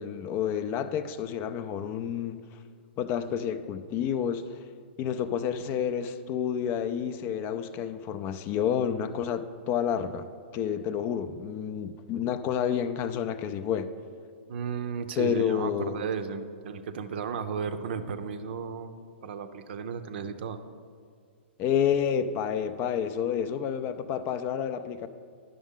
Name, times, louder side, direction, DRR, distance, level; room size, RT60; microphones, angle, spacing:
voice 1, 0.0-2.4 3.0-4.5 5.0-10.3 10.5-13.9 15.2-16.0 21.6-25.1, left 8 dB, 35° left, 0.4 m, -29 dB
voice 2, 14.5-18.9 19.2-20.6, right 6 dB, 60° right, 0.6 m, -34 dB
10.0 x 6.2 x 3.7 m
hypercardioid pair, 125°, 6 cm